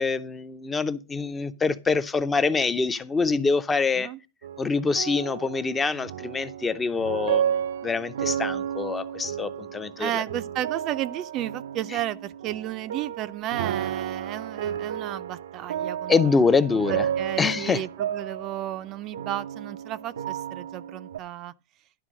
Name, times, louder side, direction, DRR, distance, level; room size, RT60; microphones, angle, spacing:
voice 1, 0.0-4.1 4.6-7.5 7.8-10.2 16.1-17.1 17.4-17.8, left 4 dB, 15° left, 0.6 m, -25 dB
sound 1, 4.4-21.2, right 9 dB, 85° right, 0.6 m, -32 dB
voice 2, 10.0-16.1 16.4-21.5, right 13 dB, 35° right, 0.5 m, -33 dB
11.5 x 4.5 x 6.2 m
supercardioid pair, 140°, 0 cm